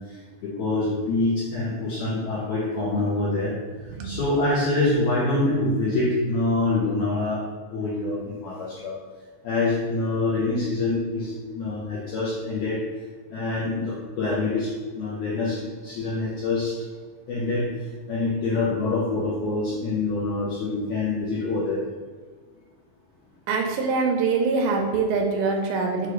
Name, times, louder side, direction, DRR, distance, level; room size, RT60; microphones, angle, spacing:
voice 1, 0.0-3.5 4.0-7.4 7.7-9.0 9.4-12.8 13.3-16.8 17.3-17.7 18.1-21.8, left 2 dB, 90° left, -7 dB, 1.6 m, -25 dB
voice 2, 23.5-26.1, right 4 dB, 90° right, 2 dB, 2.4 m, -24 dB
6.5 x 2.4 x 3.0 m, 1.5 s
omnidirectional pair, 4.1 m